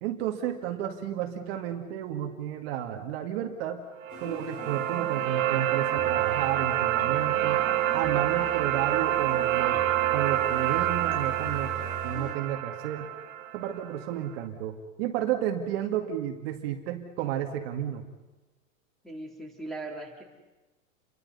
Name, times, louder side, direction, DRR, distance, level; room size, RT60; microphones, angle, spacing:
voice 1, 0.0-3.8 4.2-9.8 10.1-11.7 12.0-13.1 13.5-18.1, right 10 dB, 50° right, 3 dB, 2.2 m, -32 dB
sound 1, 4.0-14.1, right 13 dB, 80° right, 2.1 m, -27 dB
sound 2, 4.1-12.3, equal, 25° left, 5.0 m, -42 dB
voice 2, 19.0-20.2, right 2 dB, ahead, 0 dB, 3.6 m, -39 dB
30.0 x 23.5 x 5.6 m, 1.1 s
supercardioid pair, 150°, 40 cm